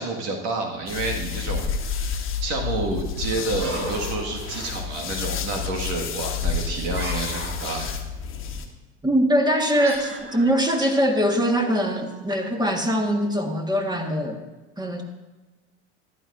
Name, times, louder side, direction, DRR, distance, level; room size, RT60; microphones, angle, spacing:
voice 1, 0.0-8.0 10.8-10.9, right 2 dB, 60° right, 0 dB, 1.9 m, -29 dB
sound 1, 0.9-8.7, left 6 dB, 35° left, 1.3 m, -30 dB
sound 2, 3.5-5.0 6.9-7.9 9.7-11.6, right 1 dB, 35° right, 3.2 m, -35 dB
voice 2, 9.0-14.4 14.8-15.0, equal, 10° right, 3 dB, 1.6 m, -22 dB
14.0 x 10.0 x 2.6 m, 1.1 s
hypercardioid pair, 80°, 34 cm